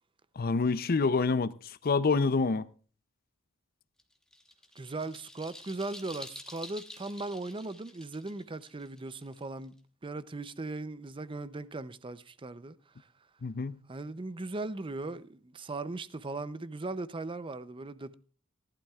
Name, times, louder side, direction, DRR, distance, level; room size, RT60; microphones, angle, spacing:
voice 1, 0.4-2.7 13.4-13.8, left 4 dB, 45° left, 0.5 m, -27 dB
sound 1, 4.0-9.8, left 1 dB, 5° left, 1.1 m, -49 dB
voice 2, 4.8-13.1 13.9-18.1, right 2 dB, 25° right, 0.5 m, -38 dB
18.5 x 11.5 x 2.4 m
head